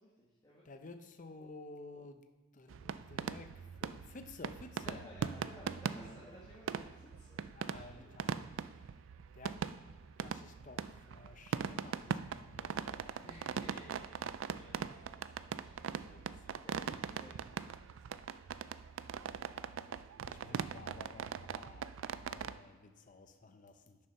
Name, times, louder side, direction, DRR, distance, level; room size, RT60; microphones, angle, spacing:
voice 1, 0.0-0.6 4.8-8.1 8.5-9.0 13.1-18.1 19.8-20.6, left 1 dB, 20° left, -7 dB, 1.3 m, -57 dB
voice 2, 0.7-2.2 2.5-5.0 7.6-8.4 9.4-9.6 10.2-13.2 16.1-16.6 20.3-24.0, left 3 dB, 35° left, 7 dB, 0.6 m, -53 dB
sound 1, 2.7-22.6, right 7 dB, 60° right, 0.3 m, -41 dB
6.8 x 6.5 x 5.8 m, 1.4 s
head